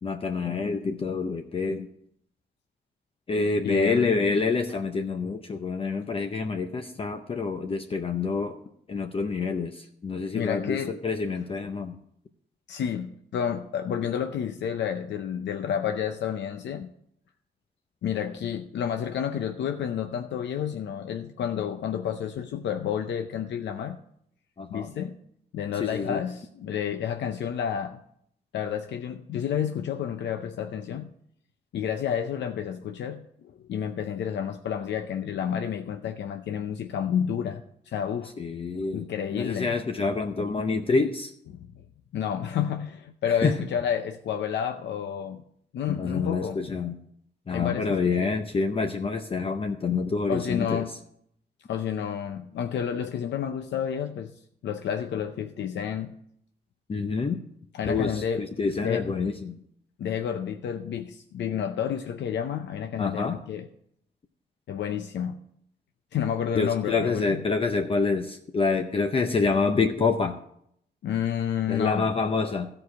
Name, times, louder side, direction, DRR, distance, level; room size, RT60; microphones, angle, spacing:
voice 1, 0.0-1.9 3.3-8.6 8.9-12.0 24.6-24.9 25.8-26.2 38.4-41.3 43.4-43.6 45.9-46.9 47.5-50.8 56.9-57.4 57.9-59.6 63.0-63.4 66.5-70.4 71.7-72.7, left 4 dB, 30° left, 5 dB, 0.6 m, -27 dB
voice 2, 3.6-4.1 10.3-11.0 12.7-16.9 18.0-24.0 24.7-25.2 25.5-28.0 28.5-31.1 31.7-38.3 38.9-39.8 41.5-41.7 42.1-45.4 45.7-46.6 47.5-48.4 50.3-50.9 51.7-54.3 54.6-56.1 57.7-58.5 58.8-59.2 60.0-63.7 64.7-65.4 66.1-67.4 71.0-72.1, left 8 dB, 90° left, 7 dB, 0.6 m, -30 dB
14.0 x 4.9 x 7.1 m, 0.70 s
wide cardioid pair, 145°, 18 cm